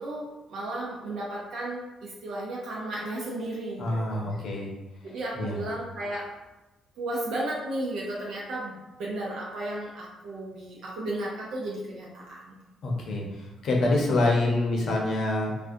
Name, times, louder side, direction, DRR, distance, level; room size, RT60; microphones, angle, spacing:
voice 1, 0.0-4.2 5.0-6.3 7.0-12.5, right 1 dB, 80° right, -5 dB, 0.5 m, -34 dB
voice 2, 3.8-4.7 5.3-5.6 12.8-15.6, left 2 dB, 70° left, -2 dB, 0.6 m, -26 dB
2.3 x 2.1 x 2.6 m, 1.0 s
cardioid pair, 90°, 0 cm